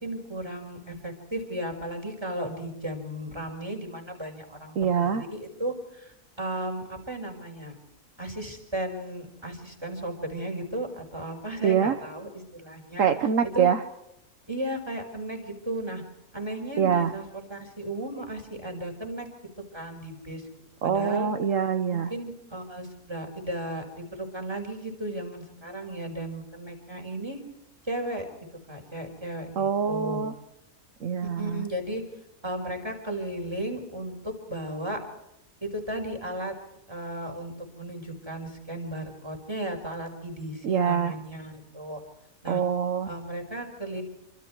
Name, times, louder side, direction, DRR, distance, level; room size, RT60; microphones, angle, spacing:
voice 1, 0.0-7.8 8.2-13.1 13.4-13.7 14.5-16.0 16.3-19.3 19.7-20.4 20.8-21.3 21.9-27.4 27.9-28.2 28.7-30.3 31.2-32.0 32.4-35.0 35.6-36.5 36.9-42.0 42.4-42.6 43.1-44.0, right 1 dB, 20° right, 4 dB, 5.4 m, -35 dB
voice 2, 4.8-5.2 11.6-12.0 13.0-13.8 16.8-17.1 20.8-22.1 29.6-30.3 31.0-31.6 40.6-41.1 42.5-43.1, right 7 dB, 65° right, 8 dB, 1.4 m, -24 dB
27.5 x 26.0 x 4.7 m, 0.86 s
omnidirectional pair, 1.5 m